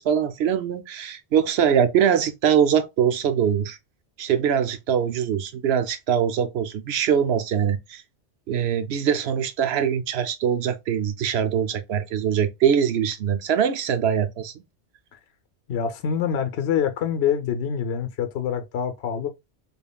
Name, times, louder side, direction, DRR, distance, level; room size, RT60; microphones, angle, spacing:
voice 1, 0.0-3.8 4.2-8.0 8.5-14.5, right 8 dB, 70° right, 0.8 m, -22 dB
voice 2, 15.7-19.3, left 8 dB, 65° left, 0.9 m, -25 dB
5.2 x 2.5 x 2.2 m
omnidirectional pair, 1.2 m